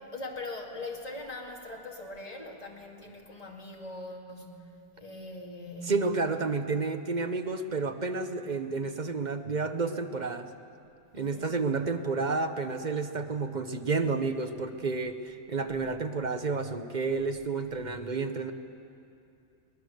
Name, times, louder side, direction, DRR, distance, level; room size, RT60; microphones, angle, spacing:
voice 1, 0.0-6.0 11.1-11.5, left 2 dB, 30° left, -1 dB, 2.2 m, -41 dB
voice 2, 5.9-10.5 11.1-18.5, right 4 dB, 40° right, 8 dB, 0.9 m, -30 dB
22.0 x 19.5 x 6.5 m, 2.7 s
omnidirectional pair, 1.3 m